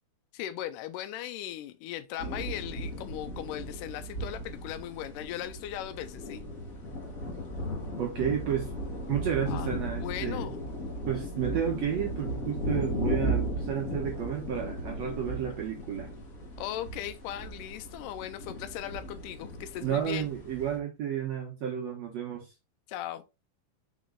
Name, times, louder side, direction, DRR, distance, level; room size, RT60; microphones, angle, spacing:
voice 1, 0.3-6.4 9.5-10.6 16.6-20.3 22.9-23.2, left 12 dB, 85° left, 1.9 m, -38 dB
sound 1, 2.2-20.8, equal, 70° left, 0.8 m, -36 dB
voice 2, 8.0-8.7 9.1-10.5 11.1-16.1 19.8-22.5, right 9 dB, 65° right, 1.7 m, -32 dB
5.2 x 5.1 x 3.8 m
omnidirectional pair, 4.4 m